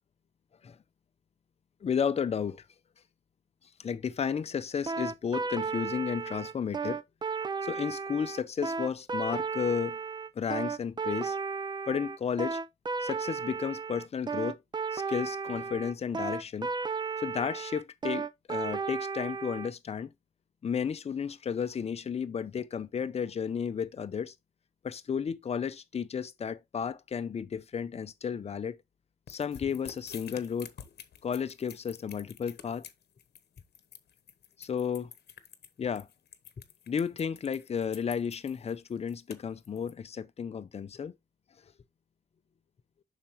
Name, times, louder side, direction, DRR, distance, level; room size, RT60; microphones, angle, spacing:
voice 1, 1.8-2.6 3.8-7.0 7.6-10.0 10.4-11.4 11.9-12.6 13.0-14.6 14.9-16.7 17.2-20.1 20.6-24.3 24.8-28.8 29.3-30.7 31.2-32.8 34.6-35.1 35.8-36.1 36.9-41.1, left 7 dB, 40° left, 0.6 m, -33 dB
sound 1, 4.9-19.7, right 5 dB, 25° right, 0.4 m, -34 dB
sound 2, 29.3-39.9, left 9 dB, 70° left, 1.0 m, -49 dB
7.3 x 5.7 x 3.0 m
wide cardioid pair, 165°, 17 cm